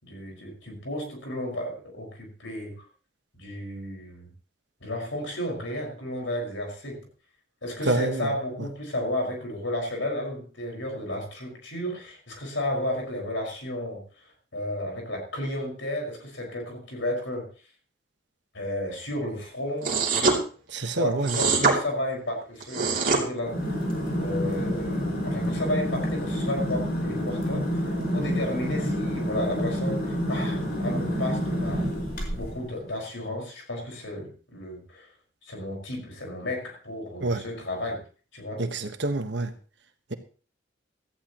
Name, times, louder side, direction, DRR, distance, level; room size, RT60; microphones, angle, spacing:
voice 1, 0.0-2.8 3.3-4.3 4.8-7.1 7.6-17.5 18.5-20.0 20.8-23.6 24.2-27.7 28.1-31.8 32.3-35.1 35.4-38.0 38.3-38.6, left 1 dB, 75° left, 1 dB, 5.3 m, -33 dB
voice 2, 7.9-8.3 20.7-21.3 37.2-37.4 38.6-39.5, right 2 dB, 65° right, 7 dB, 1.4 m, -27 dB
sound 1, 19.8-20.4 21.2-21.8 22.6-23.2, right 4 dB, 45° right, 2.9 m, -23 dB
sound 2, 23.4-32.6, equal, 50° left, 5.4 m, -28 dB
17.0 x 14.0 x 3.0 m, 0.39 s
head